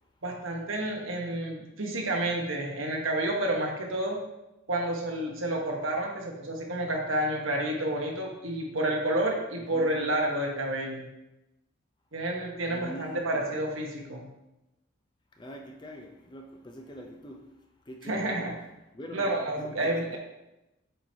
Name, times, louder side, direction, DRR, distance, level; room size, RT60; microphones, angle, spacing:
voice 1, 0.2-4.2 4.7-11.1 12.1-14.2 18.0-18.5 19.1-20.2, right 1 dB, 80° right, 0 dB, 1.2 m, -30 dB
voice 2, 12.7-13.5 15.4-17.5 17.9-18.3 18.9-20.2, equal, 20° left, 2 dB, 0.6 m, -43 dB
7.8 x 4.7 x 2.8 m, 0.96 s
head